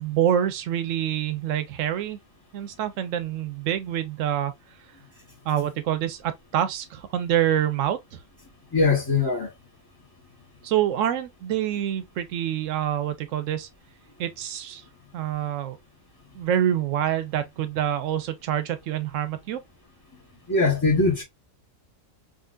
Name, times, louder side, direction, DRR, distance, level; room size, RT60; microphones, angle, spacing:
voice 1, 0.0-2.2 2.5-4.5 5.4-8.2 10.6-13.7 14.2-14.8 15.1-15.8 16.3-19.6, right 10 dB, 75° right, 0.9 m, -26 dB
voice 2, 8.7-9.5 20.5-21.2, left 3 dB, 20° left, 0.9 m, -21 dB
3.8 x 2.4 x 2.3 m
omnidirectional pair, 1.4 m